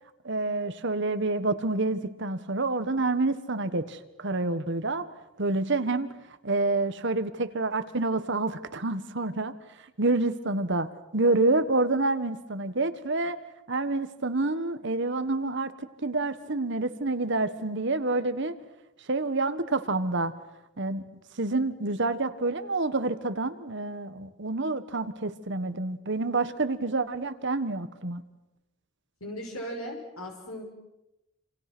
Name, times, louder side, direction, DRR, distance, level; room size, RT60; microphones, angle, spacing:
voice 1, 0.2-5.1 5.4-6.1 6.4-9.5 10.0-10.9 11.1-13.4 13.7-15.7 16.0-18.5 19.1-20.3 20.8-21.0 21.4-28.2, right 2 dB, 55° right, 11 dB, 1.5 m, -28 dB
voice 2, 29.2-30.6, equal, 85° left, 1 dB, 5.8 m, -37 dB
28.0 x 27.5 x 6.2 m, 0.92 s
head